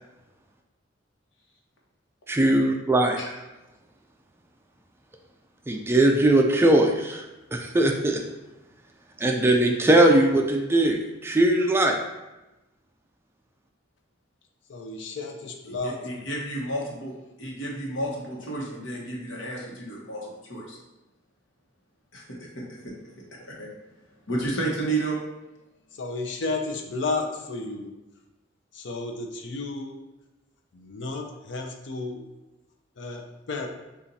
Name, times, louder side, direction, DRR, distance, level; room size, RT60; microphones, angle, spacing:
voice 1, 2.3-3.2 5.7-7.2 7.5-8.2 9.2-12.0, right 1 dB, 15° right, 2 dB, 0.3 m, -20 dB
voice 2, 14.7-16.0 25.9-27.9 28.7-30.0 30.7-32.3 33.0-33.7, left 3 dB, 65° left, 3 dB, 0.6 m, -32 dB
voice 3, 15.7-17.1 17.4-20.8 22.1-23.7 24.3-25.2, right 2 dB, 80° left, -3 dB, 1.1 m, -32 dB
6.8 x 2.5 x 2.7 m, 1.0 s
head